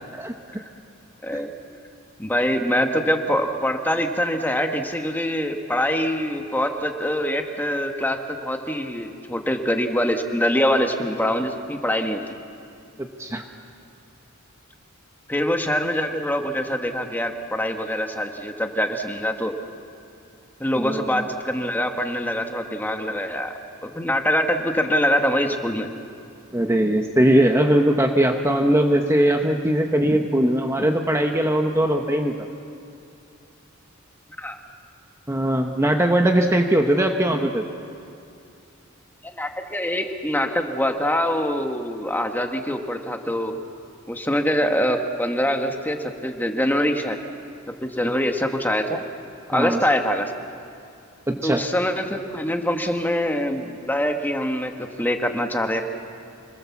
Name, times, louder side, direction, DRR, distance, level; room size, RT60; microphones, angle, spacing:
voice 1, 1.2-1.5 2.2-12.2 15.3-19.5 20.6-23.5 23.8-25.9 34.4-34.6 39.2-43.6 44.1-47.2 47.8-49.0 49.5-50.3 51.4-55.8, equal, 10° left, 4 dB, 1.4 m, -24 dB
voice 2, 13.0-13.4 20.8-21.2 26.5-32.4 35.3-37.6 49.5-49.8 51.3-51.6, right 1 dB, 15° right, 3 dB, 1.1 m, -20 dB
26.5 x 20.5 x 7.3 m, 2.6 s
head